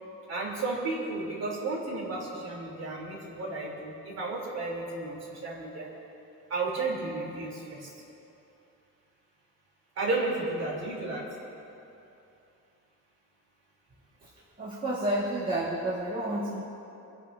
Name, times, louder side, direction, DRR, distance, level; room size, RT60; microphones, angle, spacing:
voice 1, 0.3-5.9 6.5-7.9 9.9-11.3, right 3 dB, 50° right, -4 dB, 3.4 m, -33 dB
voice 2, 14.6-16.6, right 1 dB, 25° right, -8 dB, 1.9 m, -30 dB
29.0 x 10.5 x 2.7 m, 2.8 s
cardioid pair, 170°, 33 cm